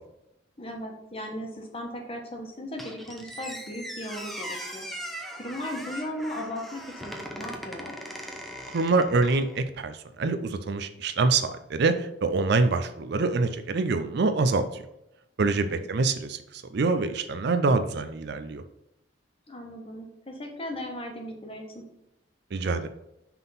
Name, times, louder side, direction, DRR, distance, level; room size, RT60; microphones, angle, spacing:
voice 1, 0.6-4.9 5.3-7.9 15.4-15.8 19.5-21.8, left 1 dB, 30° left, 2 dB, 1.2 m, -37 dB
Squeak, 2.8-9.7, equal, ahead, 0.6 m, -39 dB
voice 2, 8.7-14.8 15.4-18.6 22.5-22.9, right 3 dB, 55° right, 9 dB, 0.4 m, -25 dB
5.9 x 3.7 x 5.6 m, 0.84 s
head